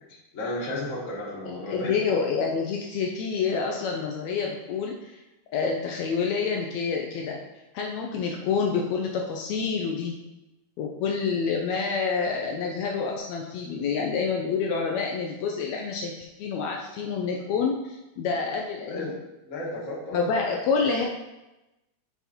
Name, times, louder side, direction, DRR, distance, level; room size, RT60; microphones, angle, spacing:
voice 1, 0.1-1.9 18.9-19.2 19.4-20.4, left 1 dB, 35° left, -4 dB, 1.4 m, -34 dB
voice 2, 1.4-5.2 5.5-7.4 7.7-10.2 10.8-19.1 20.1-21.1, left 5 dB, 75° left, 0 dB, 1.8 m, -28 dB
7.0 x 4.1 x 4.3 m, 0.99 s
omnidirectional pair, 3.4 m